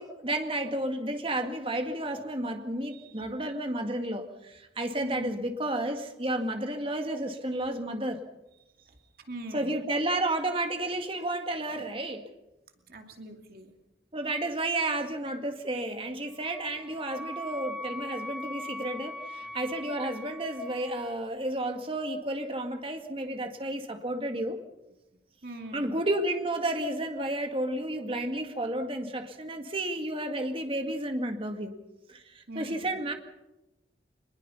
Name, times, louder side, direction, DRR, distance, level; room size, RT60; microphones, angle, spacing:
voice 1, 0.0-8.2 9.5-12.2 14.1-24.6 25.7-31.7 32.1-33.1, right 1 dB, 30° right, 2.1 m, -32 dB
voice 2, 2.9-3.3 4.9-5.4 8.8-9.8 12.9-13.7 19.4-19.5 25.4-26.0 32.5-32.9, right 1 dB, 55° right, 2.6 m, -43 dB
Wind instrument woodwind instrument, 16.4-21.2, left 1 dB, 5° right, 1.6 m, -41 dB
24.5 x 21.0 x 5.7 m
head